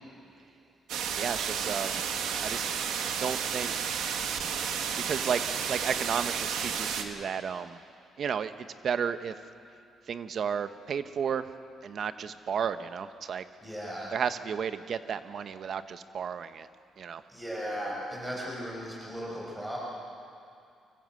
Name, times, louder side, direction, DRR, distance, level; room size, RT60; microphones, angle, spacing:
sound 1, 0.9-7.0, right 7 dB, 85° right, 1.5 m, -32 dB
voice 1, 1.2-2.0 2.4-2.7 3.2-4.0 5.1-7.8 8.2-9.3 10.1-11.5 11.8-13.4 14.1-16.7 17.0-17.2, right 7 dB, 55° right, 11 dB, 1.0 m, -33 dB
voice 2, 13.6-14.2 17.3-19.8, equal, 10° right, -5 dB, 6.5 m, -37 dB
25.0 x 15.0 x 7.8 m, 2.5 s
cardioid pair, 90°, 0 cm